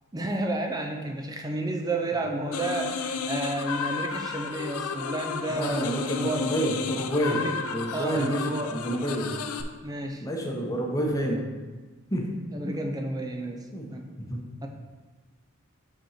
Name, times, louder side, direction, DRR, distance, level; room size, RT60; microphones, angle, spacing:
voice 1, 0.1-6.5 7.3-7.6 7.9-8.8 9.8-10.2 12.5-13.6 13.9-14.1 14.6-14.7, right 2 dB, 15° right, 3 dB, 0.5 m, -31 dB
sound 1, 2.5-9.6, left 5 dB, 85° left, 0.5 m, -33 dB
voice 2, 5.5-7.4 7.7-9.3 10.2-11.4 12.1-12.3 12.7-12.8 13.7-13.9 14.2-14.5, equal, 15° left, -1 dB, 0.9 m, -29 dB
5.6 x 4.3 x 5.7 m, 1.3 s
head